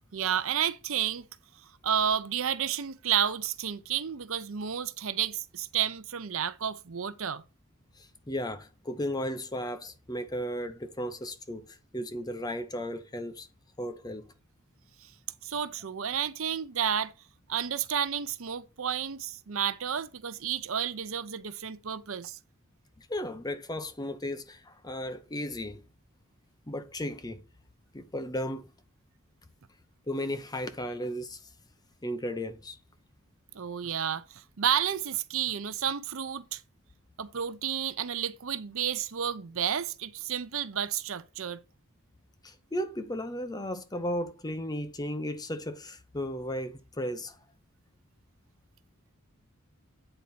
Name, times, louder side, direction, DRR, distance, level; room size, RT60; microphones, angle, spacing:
voice 1, 0.1-1.3 1.8-7.4 15.4-17.1 17.5-22.4 33.5-36.6 37.2-41.6, right 8 dB, 65° right, 0.6 m, -31 dB
voice 2, 8.0-13.5 13.8-14.3 23.0-25.8 26.7-27.4 27.9-28.7 30.1-31.4 32.0-32.8 42.4-47.4, equal, 20° left, 0.8 m, -35 dB
8.9 x 4.1 x 5.7 m
head